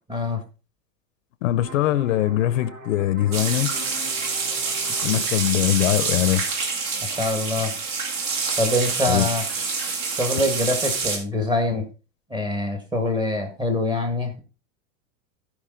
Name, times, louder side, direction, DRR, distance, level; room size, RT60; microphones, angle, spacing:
voice 1, 0.1-0.4 7.2-7.7 8.6-9.4 10.2-11.8 12.3-14.4, left 2 dB, 10° right, 1.6 m, -24 dB
voice 2, 1.4-3.7 5.0-6.4 9.1-9.3, left 14 dB, 65° left, 0.8 m, -22 dB
sound 1, 1.6-7.0, equal, 75° right, 5.1 m, -43 dB
sound 2, 3.3-11.2, right 4 dB, 45° right, 2.9 m, -27 dB
15.0 x 5.2 x 3.8 m
supercardioid pair, 155°, 41 cm